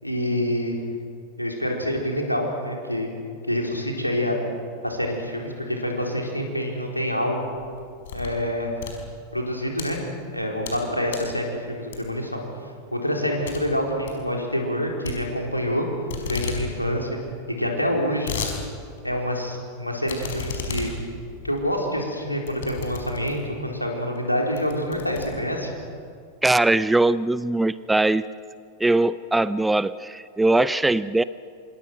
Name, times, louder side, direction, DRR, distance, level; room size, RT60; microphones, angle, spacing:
voice 1, 0.0-0.8 1.4-3.1 3.5-4.4 4.8-7.4 8.1-8.7 9.3-10.0 10.3-12.4 12.9-15.9 16.2-17.1 17.6-18.4 19.0-20.9 21.4-25.7, equal, 90° left, 0 dB, 4.2 m, -26 dB
sound 1, 7.5-8.4 8.7-9.9 10.4-10.8 11.1-11.4 11.9-12.3 12.7-12.8 13.1-13.2 13.5-13.6 13.9-14.2 15.0-15.8 16.1-16.6 16.9-17.0 17.2-17.3 17.9-18.6 19.0-19.1 20.1-23.6 24.1-24.2 24.6-25.8, left 5 dB, 60° left, 5.2 m, -34 dB
voice 2, 26.4-28.2 28.8-31.2, right 2 dB, 5° right, 17 dB, 0.6 m, -21 dB
27.0 x 26.5 x 6.2 m, 2.3 s
figure-of-eight pair, 90°, 0 cm